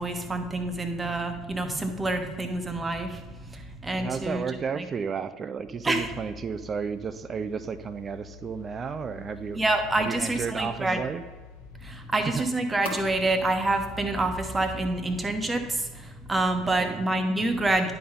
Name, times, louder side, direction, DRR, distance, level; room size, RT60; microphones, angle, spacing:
voice 1, 0.0-4.4 4.7-4.8 5.8-6.1 9.5-11.0 11.7-17.9, right 2 dB, 15° right, 6 dB, 1.1 m, -27 dB
voice 2, 4.0-9.6 10.0-11.2 12.3-12.4 16.6-17.0, right 6 dB, 30° right, 12 dB, 0.5 m, -33 dB
sound 1, 5.7-14.9, left 2 dB, 75° left, 1.6 m, -45 dB
10.5 x 4.0 x 5.3 m, 1.4 s
figure-of-eight pair, 65°, 0 cm